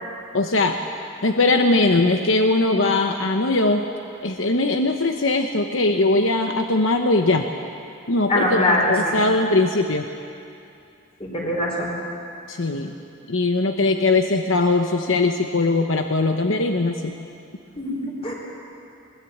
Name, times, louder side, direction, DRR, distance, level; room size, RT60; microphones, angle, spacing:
voice 1, 0.3-0.8 1.2-3.9 4.2-7.5 8.1-10.1 12.5-12.9 13.3-17.1, left 2 dB, 70° left, 5 dB, 1.0 m, -20 dB
voice 2, 8.3-9.2 11.2-11.9 17.7-18.3, left 1 dB, 30° left, -1 dB, 5.0 m, -22 dB
21.5 x 19.5 x 8.7 m, 2.6 s
head